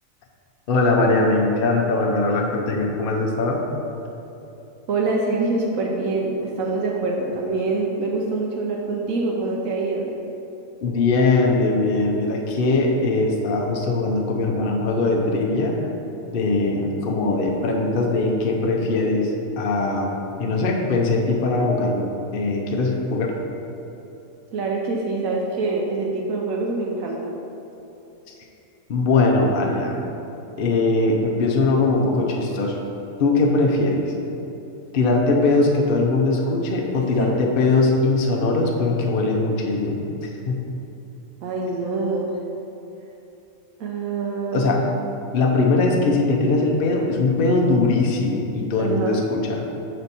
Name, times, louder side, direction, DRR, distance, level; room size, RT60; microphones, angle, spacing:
voice 1, 0.7-3.6 10.8-15.8 16.3-23.4 28.9-30.0 30.6-32.8 33.2-34.0 34.9-40.6 44.5-44.8 45.3-49.6, left 3 dB, 50° left, 0 dB, 0.7 m, -21 dB
voice 2, 4.9-10.1 24.5-27.3 37.2-37.3 41.4-42.4 43.8-44.9 48.8-49.1, right 3 dB, 75° right, -1 dB, 1.1 m, -25 dB
6.8 x 4.3 x 4.1 m, 2.9 s
omnidirectional pair, 1.5 m